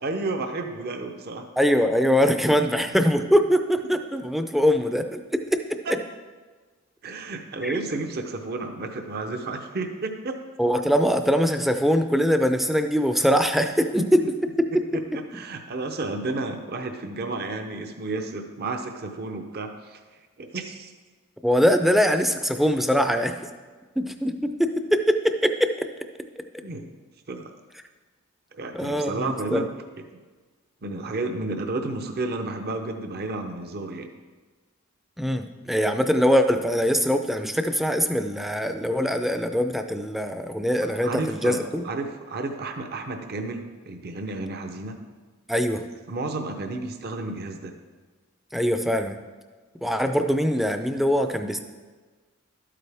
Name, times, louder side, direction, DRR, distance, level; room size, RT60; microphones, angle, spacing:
voice 1, 0.0-1.5 5.9-6.0 7.0-10.4 14.9-20.0 20.4-20.9 26.6-26.9 27.3-27.4 28.5-29.7 30.8-34.1 41.0-45.0 46.1-47.7, right 2 dB, 45° right, 6 dB, 0.7 m, -31 dB
voice 2, 1.6-6.0 7.6-7.8 10.6-14.8 21.4-23.3 24.0-25.9 28.7-29.7 35.2-41.8 45.5-45.8 48.5-49.2 49.8-51.6, equal, ahead, 7 dB, 0.4 m, -22 dB
12.0 x 8.5 x 3.4 m, 1.4 s
head